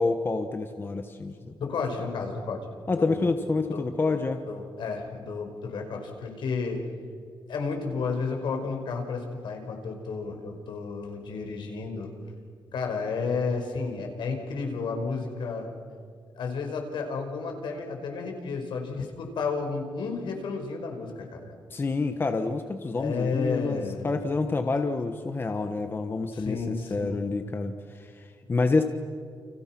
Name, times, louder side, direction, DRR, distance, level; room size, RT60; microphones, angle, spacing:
voice 1, 0.0-1.5 2.9-4.4 21.7-28.8, left 3 dB, 25° left, 7 dB, 1.3 m, -28 dB
voice 2, 1.6-2.7 3.0-3.3 3.7-4.2 4.5-6.8 7.5-12.1 12.7-15.7 16.4-21.5 23.0-24.1 26.3-27.2, left 4 dB, 70° left, 3 dB, 5.4 m, -32 dB
30.0 x 29.5 x 6.1 m, 2.1 s
cardioid pair, 130°, 8 cm